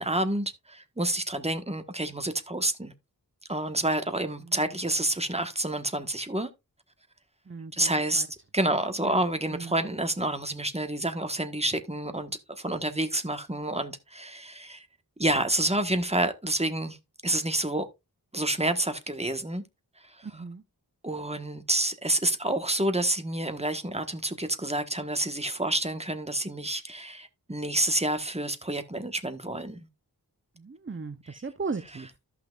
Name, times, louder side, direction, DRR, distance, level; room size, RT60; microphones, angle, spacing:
voice 1, 0.0-2.9 3.5-6.5 7.7-8.3 8.5-12.3 12.6-14.9 15.2-17.0 17.2-17.9 18.3-19.6 20.0-20.3 21.0-29.9, right 1 dB, 15° right, 1.3 m, -28 dB
voice 2, 7.5-8.3 9.0-9.2 9.5-9.8 20.2-20.6 30.6-32.1, right 4 dB, 30° right, 0.7 m, -37 dB
14.0 x 5.8 x 2.4 m
wide cardioid pair, 40°, 38 cm